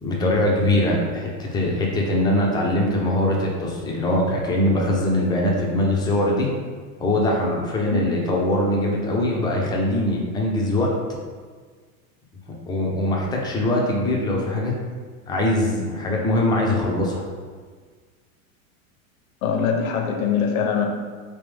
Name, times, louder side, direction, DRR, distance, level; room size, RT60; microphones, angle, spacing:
voice 1, 0.0-6.5 7.0-10.9 12.7-14.7 15.3-17.2, left 1 dB, 10° left, -2 dB, 0.4 m, -22 dB
voice 2, 19.4-20.9, left 6 dB, 75° left, 3 dB, 0.8 m, -22 dB
3.4 x 2.9 x 3.4 m, 1.5 s
supercardioid pair, 125°, 43 cm